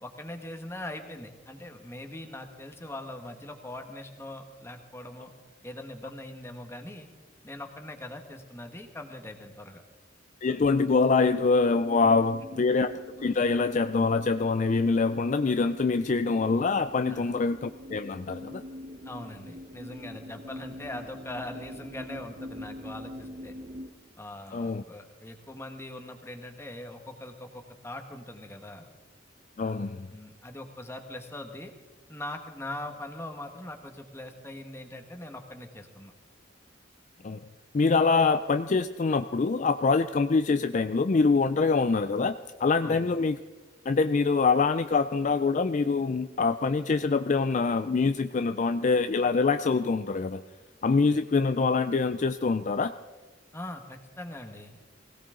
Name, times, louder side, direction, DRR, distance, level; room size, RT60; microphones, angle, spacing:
voice 1, 0.0-5.3 5.6-7.1 7.4-9.8 17.1-17.3 19.0-23.5 24.2-28.9 30.1-31.7 32.1-36.1 42.8-43.1 53.5-54.8, left 1 dB, 15° left, 5 dB, 1.4 m, -41 dB
voice 2, 10.4-18.6 24.5-24.8 29.6-30.1 37.2-37.4 37.7-42.3 42.6-43.4 43.9-50.4 50.8-52.9, left 4 dB, 40° left, 10 dB, 0.4 m, -25 dB
sound 1, 10.6-23.9, left 1 dB, 40° right, 0.9 m, -44 dB
21.0 x 17.0 x 3.8 m, 1.3 s
head